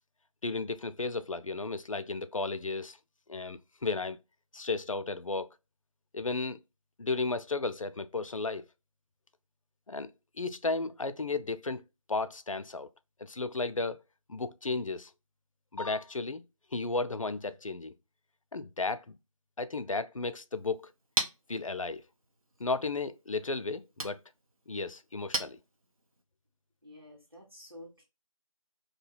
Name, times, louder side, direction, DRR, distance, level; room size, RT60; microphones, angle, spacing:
voice 1, 0.4-3.0 3.3-4.2 4.5-5.5 6.1-6.6 7.0-8.6 9.9-10.1 10.4-11.8 12.1-12.9 13.2-14.0 14.3-15.1 15.7-16.4 16.7-17.9 18.5-19.2 19.6-20.9 21.5-22.0 22.6-24.2 24.7-25.6, left 3 dB, 70° left, 0.4 m, -34 dB
Chink clink, 20.5-26.2, right 1 dB, 90° right, 0.8 m, -40 dB
voice 2, 26.8-28.0, left 1 dB, 45° right, 0.9 m, -50 dB
2.7 x 2.2 x 4.0 m
figure-of-eight pair, 180°, 17 cm